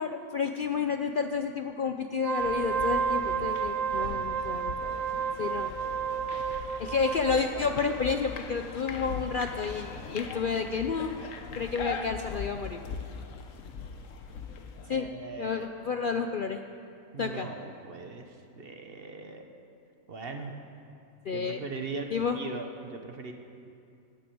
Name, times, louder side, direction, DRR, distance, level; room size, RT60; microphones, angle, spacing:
voice 1, 0.0-4.9 5.4-5.7 6.8-11.2 11.5-12.8 14.9-15.1 15.4-16.6 17.2-17.5 21.3-21.6 22.1-22.4, left 5 dB, 55° left, 6 dB, 0.6 m, -30 dB
Wind instrument woodwind instrument, 2.1-7.4, right 6 dB, 75° right, 0.3 m, -31 dB
sound 1, 2.4-14.9, left 5 dB, 70° left, 1.3 m, -40 dB
voice 2, 14.9-15.7 16.0-16.1 17.1-19.5 20.1-20.5 21.3-23.3, right 3 dB, 45° right, 5 dB, 1.2 m, -40 dB
13.0 x 9.6 x 8.6 m, 2.5 s
omnidirectional pair, 1.4 m